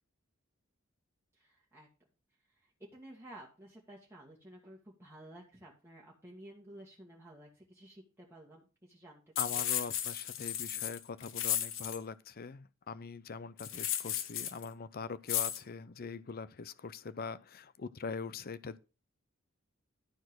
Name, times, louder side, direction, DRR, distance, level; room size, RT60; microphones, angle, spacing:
voice 1, 1.3-1.9 2.5-9.2 9.5-9.6, right 1 dB, 10° right, 2.0 m, -53 dB
sound 1, 9.4-12.0 13.6-14.6 15.3-15.6, left 10 dB, 65° left, 1.1 m, -34 dB
voice 2, 9.4-18.8, left 5 dB, 45° left, 0.6 m, -42 dB
11.5 x 4.5 x 6.1 m
head